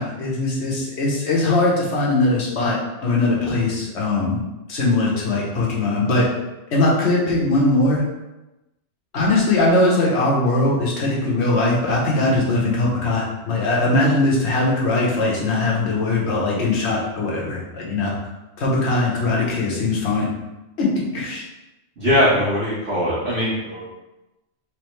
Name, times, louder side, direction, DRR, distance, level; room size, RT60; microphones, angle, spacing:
voice 1, 0.0-4.4 4.7-6.3 6.7-8.0 9.1-18.1 18.6-20.3 20.8-21.4, left 2 dB, 70° left, -4 dB, 1.3 m, -20 dB
voice 2, 22.0-23.9, left 1 dB, 75° right, -11 dB, 1.5 m, -20 dB
3.5 x 3.4 x 3.1 m, 1.0 s
omnidirectional pair, 1.2 m